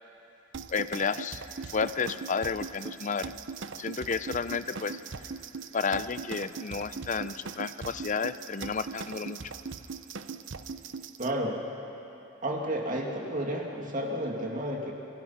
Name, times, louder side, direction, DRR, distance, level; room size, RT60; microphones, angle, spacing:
sound 1, 0.5-11.3, right 5 dB, 65° right, 0.7 m, -40 dB
voice 1, 0.7-3.3 3.8-5.0 5.7-9.4, left 5 dB, 40° left, 14 dB, 0.5 m, -31 dB
voice 2, 11.2-11.6 12.4-14.9, equal, 40° right, 0 dB, 2.4 m, -31 dB
27.0 x 22.0 x 5.8 m, 3.0 s
head